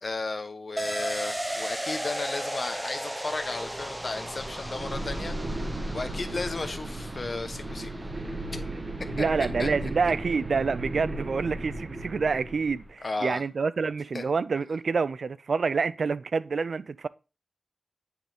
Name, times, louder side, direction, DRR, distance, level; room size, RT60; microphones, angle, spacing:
voice 1, 0.0-7.9 9.6-9.9 13.0-13.4 14.1-14.2, left 3 dB, 55° left, 0.9 m, -34 dB
sound 1, 0.8-10.2 10.5-10.6, right 1 dB, 10° right, 0.8 m, -36 dB
sound 2, 3.3-12.9, right 1 dB, 45° right, 1.4 m, -36 dB
voice 2, 9.1-17.1, right 5 dB, 80° right, 0.4 m, -27 dB
9.4 x 3.8 x 3.4 m
wide cardioid pair, 80°, 0 cm